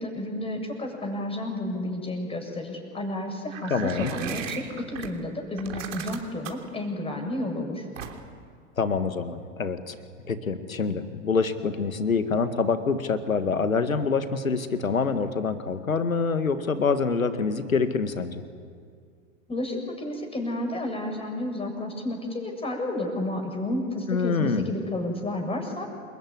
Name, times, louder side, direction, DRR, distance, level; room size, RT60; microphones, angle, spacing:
voice 1, 0.0-3.7 4.0-7.9 19.5-25.9, left 1 dB, 15° left, 3 dB, 7.1 m, -31 dB
sound 1, 3.5-5.1 5.6-6.7 8.0-8.4, right 7 dB, 70° right, 3.4 m, -35 dB
voice 2, 3.7-4.1 8.8-10.0 10.3-18.4 24.1-24.7, left 5 dB, 85° left, 10 dB, 2.0 m, -26 dB
28.5 x 21.5 x 9.7 m, 2.2 s
figure-of-eight pair, 90°, 40 cm